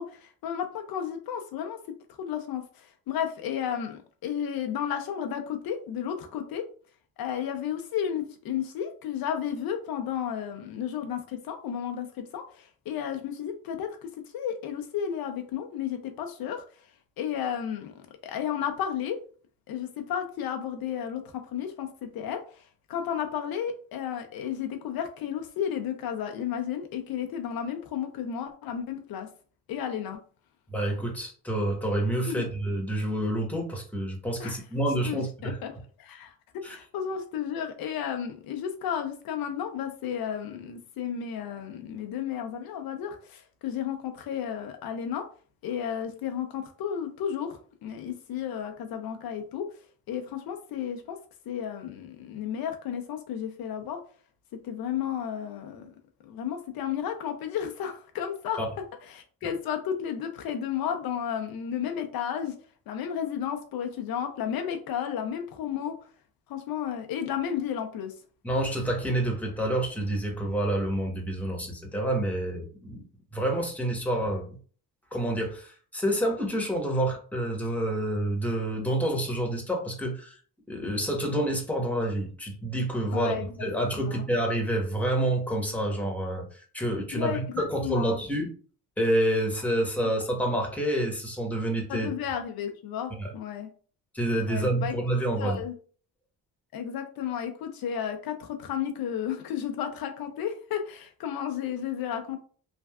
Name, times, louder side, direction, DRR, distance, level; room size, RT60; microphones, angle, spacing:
voice 1, 0.0-1.8 2.2-6.7 7.2-16.6 17.2-19.2 19.7-22.6 22.9-29.3 29.7-30.2 32.3-32.5 34.4-34.6 35.1-45.3 45.6-49.7 50.1-51.2 51.5-54.0 54.6-55.9 56.2-58.6 59.0-62.6 62.9-66.0 66.5-68.1 83.1-83.6 83.9-84.2 87.1-88.2 91.9-93.7 94.5-95.0 95.4-95.7 96.7-102.4, left 9 dB, 70° left, 5 dB, 0.6 m, -33 dB
voice 2, 30.7-35.6 36.6-36.7 58.6-58.7 68.4-73.0 73.3-74.6 75.1-80.4 80.7-83.3 83.6-88.5 89.0-92.1 93.2-93.3 94.1-95.6, right 1 dB, 5° left, 1 dB, 1.1 m, -28 dB
3.3 x 2.5 x 2.3 m, 0.42 s
cardioid pair, 75°, 37 cm